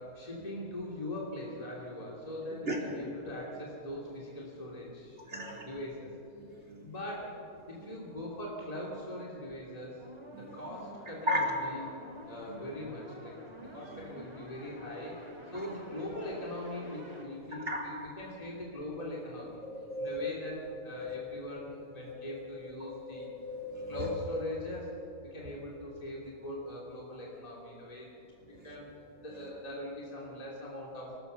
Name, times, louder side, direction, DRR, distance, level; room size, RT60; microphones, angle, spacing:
voice 1, 0.0-6.1 6.8-7.4 7.7-13.4 13.7-19.6 20.0-23.3 23.9-24.9 25.3-28.1 28.6-28.9 29.2-31.2, left 1 dB, 25° left, -4 dB, 3.0 m, -41 dB
voice 2, 5.3-5.7 6.4-6.9 7.8-7.9 10.3-10.5 11.3-11.5 12.5-12.6 13.6-14.0 15.5-15.7 17.7-17.8 19.9-20.4 21.0-21.2 22.1-22.4 22.8-24.1 28.5-28.7, left 1 dB, 45° right, -1 dB, 3.9 m, -36 dB
sound 1, 10.0-17.2, equal, 15° right, 3.1 m, -49 dB
26.0 x 18.5 x 6.9 m, 2.9 s
omnidirectional pair, 1.7 m